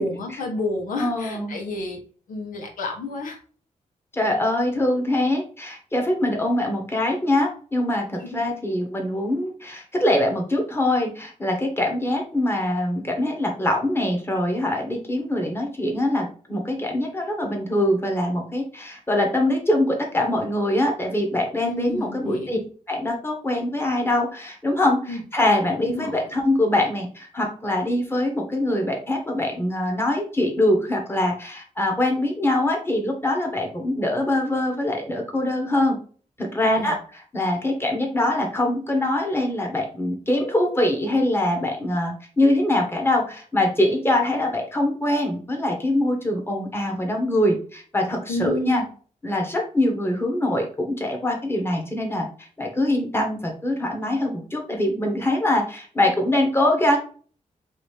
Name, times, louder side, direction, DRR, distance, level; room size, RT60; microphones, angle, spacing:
voice 1, 0.0-2.0 2.3-3.4 8.2-8.5 21.6-22.6 25.1-25.2 25.8-26.3 36.6-37.0 48.3-48.9, left 2 dB, 90° left, 2 dB, 1.0 m, -30 dB
voice 2, 1.0-1.5 4.1-22.6 22.9-36.0 36.4-37.0 37.3-48.8 49.2-57.0, left 1 dB, 20° left, 2 dB, 1.3 m, -23 dB
4.9 x 2.7 x 3.3 m, 0.42 s
cardioid pair, 100°, 13 cm